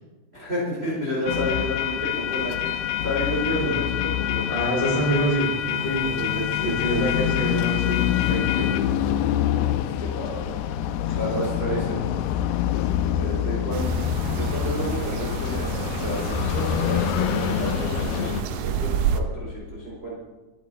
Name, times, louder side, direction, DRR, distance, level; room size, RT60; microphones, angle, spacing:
voice 1, 0.3-4.6 6.0-7.3 8.7-8.8 9.1-9.3 9.8-10.5 11.1-12.0 13.1-13.9 14.3-20.2, equal, 15° right, -4 dB, 4.3 m, -31 dB
sound 1, 1.3-18.4, left 11 dB, 80° left, 2.6 m, -26 dB
voice 2, 4.5-6.1 6.6-8.7 11.1-11.2, equal, 60° left, -4 dB, 7.6 m, -26 dB
sound 2, 13.7-19.2, right 7 dB, 75° right, 1.9 m, -29 dB
24.0 x 11.5 x 4.2 m, 1.2 s
omnidirectional pair, 4.9 m